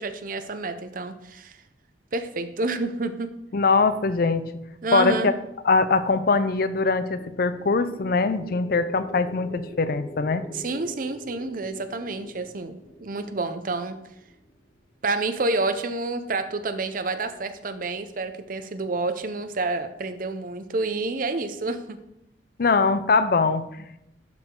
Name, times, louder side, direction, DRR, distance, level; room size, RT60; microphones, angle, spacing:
voice 1, 0.0-1.6 2.1-3.3 4.8-5.3 10.5-14.0 15.0-22.0, right 3 dB, 50° right, 9 dB, 0.7 m, -29 dB
voice 2, 3.5-4.5 4.9-5.3 5.6-10.5 22.6-24.0, left 4 dB, 55° left, 12 dB, 0.5 m, -22 dB
sound 1, 6.7-14.8, equal, 30° left, 0.9 m, -45 dB
12.0 x 4.9 x 3.8 m, 0.84 s
head